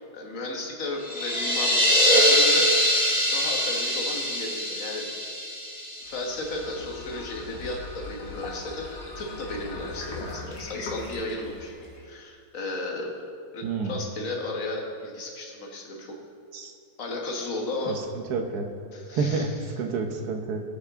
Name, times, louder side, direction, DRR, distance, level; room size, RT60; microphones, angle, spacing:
voice 1, 0.1-1.8 2.1-2.7 3.3-5.1 6.0-11.7 12.0-13.1 13.5-16.1 17.0-18.0 18.9-19.8, left 2 dB, 50° left, 0 dB, 1.6 m, -34 dB
sound 1, 1.0-6.6, equal, 5° left, 1.7 m, -23 dB
sound 2, 6.0-12.1, left 2 dB, 75° left, 1.9 m, -39 dB
voice 2, 13.6-14.0 16.5-16.7 18.3-18.7 19.2-19.5 19.8-20.6, right 4 dB, 65° right, 4 dB, 1.4 m, -28 dB
17.0 x 5.9 x 3.6 m, 2.3 s
omnidirectional pair, 1.9 m